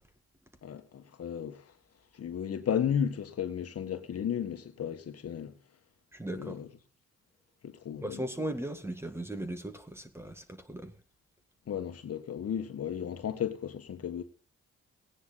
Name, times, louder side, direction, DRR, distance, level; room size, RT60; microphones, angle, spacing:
voice 1, 0.6-1.7 2.1-5.5 6.3-6.7 7.6-8.2 11.7-14.2, left 8 dB, 55° left, 1.6 m, -34 dB
voice 2, 6.1-6.6 8.0-10.9, right 1 dB, 10° right, 1.8 m, -37 dB
17.0 x 9.8 x 4.0 m
cardioid pair, 90°, 30 cm